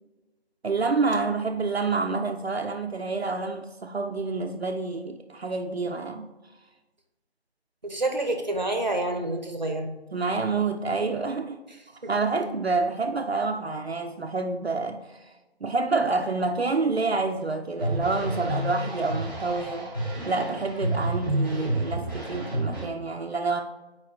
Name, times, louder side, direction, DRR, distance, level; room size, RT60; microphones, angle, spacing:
voice 1, 0.6-6.3 10.1-11.6 12.1-15.3 15.6-19.9 20.3-23.6, right 3 dB, 70° right, 0.6 m, -28 dB
voice 2, 7.8-9.9, right 2 dB, 45° right, 0.8 m, -28 dB
sound 1, 17.8-22.8, right 1 dB, 20° left, 1.3 m, -29 dB
4.7 x 4.7 x 4.3 m
figure-of-eight pair, 170°, 32 cm